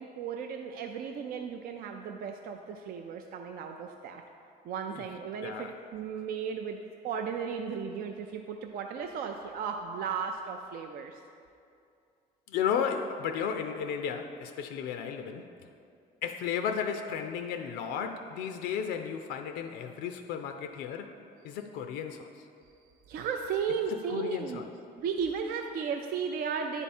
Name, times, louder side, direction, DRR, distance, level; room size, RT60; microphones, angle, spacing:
voice 1, 0.0-4.2 4.6-6.8 7.0-11.2 23.1-24.6 25.0-26.8, right 6 dB, 65° right, 4 dB, 0.4 m, -35 dB
voice 2, 5.4-5.7 12.5-15.5 16.2-21.1 21.4-22.3 24.1-24.7, left 7 dB, 85° left, 7 dB, 0.4 m, -34 dB
9.8 x 3.5 x 4.3 m, 2.5 s
cardioid pair, 110°, 17 cm